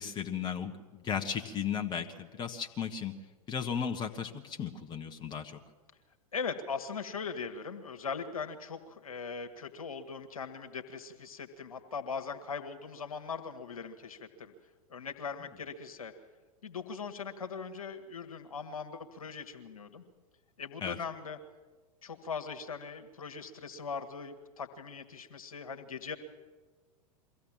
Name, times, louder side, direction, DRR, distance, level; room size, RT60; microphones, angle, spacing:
voice 1, 0.0-3.2 3.5-5.6 20.8-21.0, left 7 dB, 25° left, 4 dB, 1.4 m, -35 dB
voice 2, 6.3-14.5 14.9-16.1 16.6-20.0 20.6-21.4 22.0-26.2, left 5 dB, 75° left, 7 dB, 1.7 m, -40 dB
23.0 x 16.0 x 7.4 m, 1.3 s
figure-of-eight pair, 95°, 18 cm